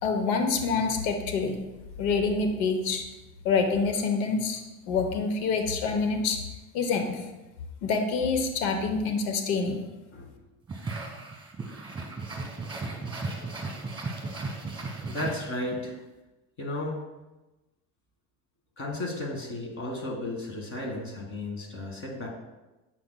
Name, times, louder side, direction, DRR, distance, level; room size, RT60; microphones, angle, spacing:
voice 1, 0.0-1.6 2.0-3.0 3.4-4.6 4.9-6.4 6.7-7.2 7.8-9.8, left 4 dB, 85° left, 5 dB, 0.8 m, -26 dB
voice 2, 10.1-10.5 15.1-15.9 16.6-17.0 18.8-22.3, left 2 dB, 40° left, 1 dB, 1.7 m, -34 dB
sound 1, 10.7-15.9, right 3 dB, 15° right, 1.3 m, -36 dB
7.6 x 5.8 x 2.2 m, 1.1 s
cardioid pair, 110°, 33 cm